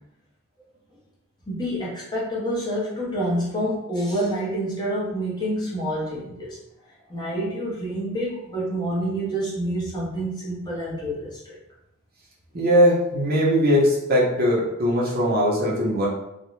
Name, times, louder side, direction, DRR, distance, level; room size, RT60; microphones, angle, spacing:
voice 1, 1.5-6.6 7.1-11.6, right 1 dB, 20° left, -5 dB, 0.6 m, -27 dB
voice 2, 12.5-16.1, equal, 45° right, -5 dB, 0.7 m, -20 dB
2.4 x 2.0 x 2.9 m, 0.85 s
head